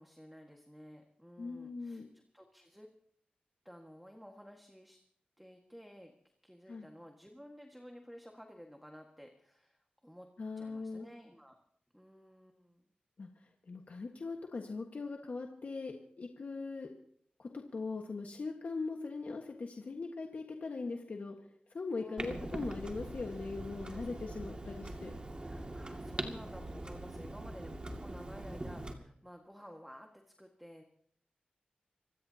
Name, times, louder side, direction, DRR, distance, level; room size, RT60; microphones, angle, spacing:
voice 1, 0.0-2.9 3.6-5.0 5.4-6.1 6.4-10.3 10.5-11.6 11.9-12.9 22.0-22.5 23.9-24.4 25.4-30.8, equal, ahead, 3 dB, 1.7 m, -54 dB
voice 2, 1.4-2.1 6.7-6.9 10.4-11.1 13.2-16.9 17.4-21.4 21.7-25.2, left 3 dB, 60° left, 2 dB, 1.5 m, -40 dB
Clock, 22.2-28.9, right 1 dB, 30° right, 2.2 m, -42 dB
26.0 x 16.0 x 2.9 m, 0.65 s
cardioid pair, 70°, 3 cm